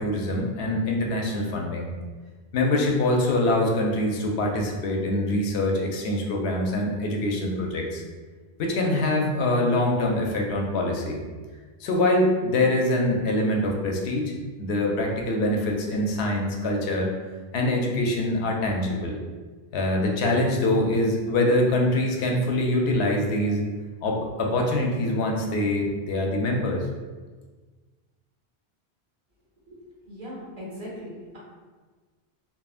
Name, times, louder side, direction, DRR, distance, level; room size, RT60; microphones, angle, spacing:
voice 1, 0.0-1.9 2.5-8.0 8.6-11.2 11.8-14.3 14.6-17.1 17.5-19.2 19.7-23.6 24.0-26.8, left 1 dB, 80° left, 0 dB, 0.8 m, -24 dB
voice 2, 30.0-31.4, equal, 45° right, -6 dB, 1.2 m, -39 dB
3.6 x 2.0 x 2.4 m, 1.4 s
omnidirectional pair, 1.1 m